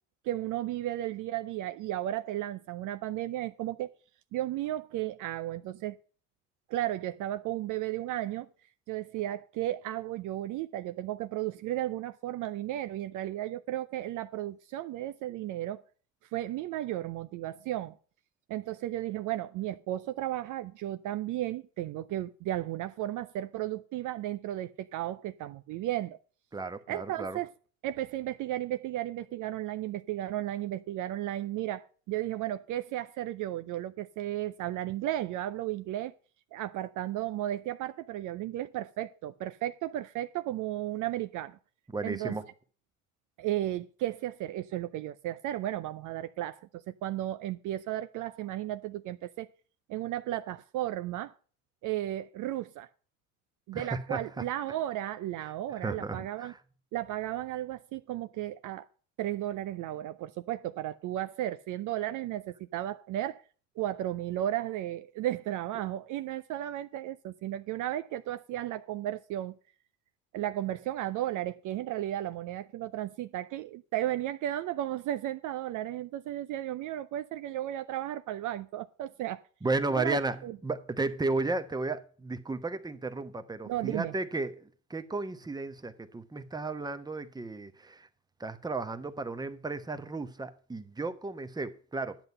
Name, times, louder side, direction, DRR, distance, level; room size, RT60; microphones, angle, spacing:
voice 1, 0.2-3.9 4.3-6.0 6.7-8.5 8.9-15.8 16.3-17.9 18.5-26.2 26.9-27.5 27.8-36.1 36.5-41.6 42.0-42.4 43.4-49.5 49.9-51.3 51.8-52.9 53.7-56.5 56.9-58.8 59.2-63.4 63.8-69.6 70.3-79.4 79.9-80.5 83.7-84.1, right 13 dB, 50° right, 0.6 m, -34 dB
voice 2, 26.5-27.4 41.9-42.5 53.7-54.4 55.4-56.6 79.6-88.1 88.4-92.2, right 3 dB, 10° right, 1.1 m, -34 dB
10.5 x 8.0 x 5.5 m
hypercardioid pair, 70°, 40 cm